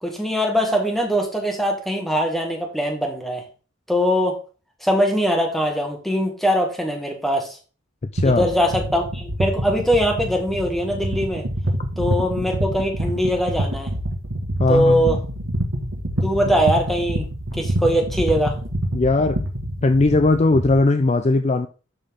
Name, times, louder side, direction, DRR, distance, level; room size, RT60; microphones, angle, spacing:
voice 1, 0.0-3.5 3.9-4.4 4.8-7.6 8.2-11.5 12.0-13.9 14.7-15.2 16.2-17.3 17.5-18.6, equal, ahead, 1.7 m, -21 dB
voice 2, 8.1-8.5 14.6-15.0 18.9-19.4 19.8-21.7, left 2 dB, 30° left, 0.4 m, -18 dB
sound 1, 8.1-20.8, right 1 dB, 85° right, 1.8 m, -26 dB
12.0 x 4.5 x 3.7 m
head